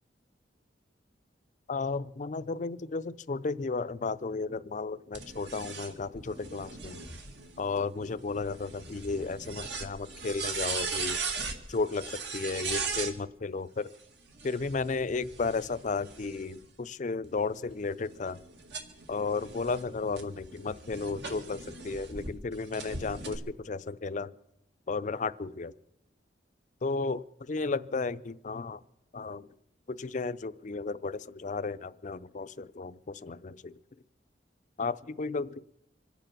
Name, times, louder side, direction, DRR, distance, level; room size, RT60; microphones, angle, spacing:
voice 1, 1.7-7.0 7.6-11.2 11.7-13.9 14.4-18.4 19.1-24.3 24.9-25.7 26.8-28.8 29.1-29.5 29.9-33.8 34.8-35.6, left 4 dB, 45° left, 14 dB, 0.5 m, -34 dB
sound 1, 5.1-13.1 14.3-16.7 17.2-22.3 22.7-23.4, right 4 dB, 70° right, 2.0 m, -39 dB
25.5 x 9.1 x 5.9 m, 0.81 s
head